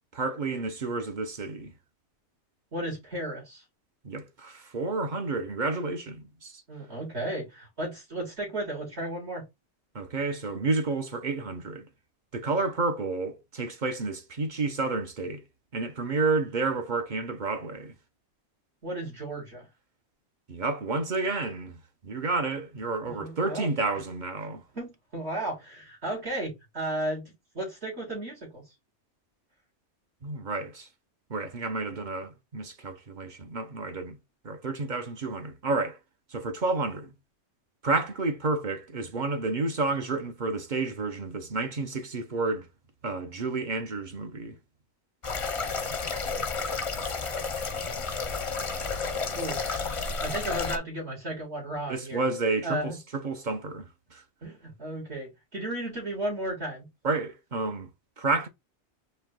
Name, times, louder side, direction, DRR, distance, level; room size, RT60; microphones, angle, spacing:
voice 1, 0.1-1.7 4.0-6.6 9.9-11.9 12.3-15.4 15.7-17.9 20.5-21.8 22.0-24.6 30.2-30.9 31.3-34.2 34.4-36.0 36.3-37.1 37.8-42.7 43.0-44.6 51.9-54.2 57.0-57.9 58.2-58.5, right 3 dB, 45° right, 0.9 m, -30 dB
voice 2, 2.7-3.6 6.7-9.4 18.8-19.7 23.2-23.7 24.4-28.6 49.3-49.6 50.2-52.2 52.6-53.0 54.4-56.9, right 1 dB, 65° right, 2.7 m, -34 dB
sound 1, 45.2-50.8, left 4 dB, 35° left, 0.6 m, -31 dB
4.5 x 3.0 x 3.6 m
omnidirectional pair, 1.2 m